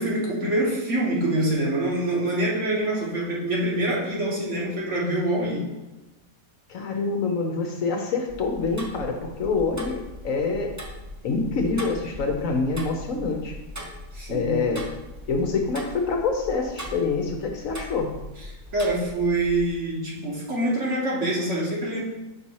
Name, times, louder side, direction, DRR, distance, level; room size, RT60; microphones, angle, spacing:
voice 1, 0.0-5.6 14.1-14.7 18.7-22.0, right 1 dB, 50° right, -4 dB, 1.7 m, -25 dB
voice 2, 6.7-10.7 11.2-13.6 14.3-14.8 15.3-18.1, left 4 dB, 65° left, 3 dB, 1.1 m, -26 dB
Tick-tock, 8.3-19.7, equal, 20° right, 0.5 m, -40 dB
5.4 x 4.2 x 4.6 m, 1.0 s
omnidirectional pair, 1.6 m